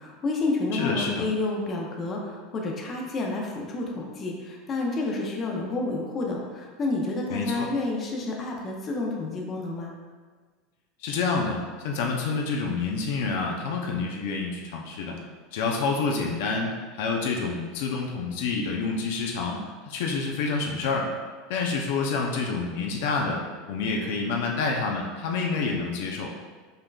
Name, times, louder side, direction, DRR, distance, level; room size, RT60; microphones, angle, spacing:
voice 1, 0.0-9.9, left 2 dB, 30° left, -1 dB, 0.7 m, -30 dB
voice 2, 0.7-1.3 7.3-7.7 11.0-15.2 15.5-21.1 21.5-26.3, left 4 dB, 75° left, 0 dB, 0.6 m, -28 dB
5.5 x 3.7 x 2.3 m, 1.5 s
supercardioid pair, 140°, 0 cm